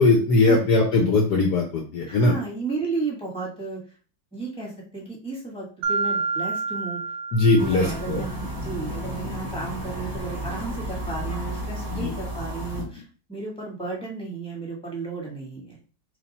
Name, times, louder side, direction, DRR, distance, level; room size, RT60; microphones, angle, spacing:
voice 1, 0.0-2.3 7.3-8.2 12.0-12.1, left 2 dB, 65° left, 1 dB, 1.2 m, -20 dB
voice 2, 2.1-3.8 4.3-7.0 7.6-15.8, right 4 dB, 5° left, -3 dB, 1.2 m, -33 dB
Mallet percussion, 5.8-8.4, right 4 dB, 70° right, 1.1 m, -29 dB
sound 1, 7.6-12.8, equal, 20° right, 0.6 m, -32 dB
3.2 x 2.8 x 4.1 m, 0.38 s
omnidirectional pair, 2.1 m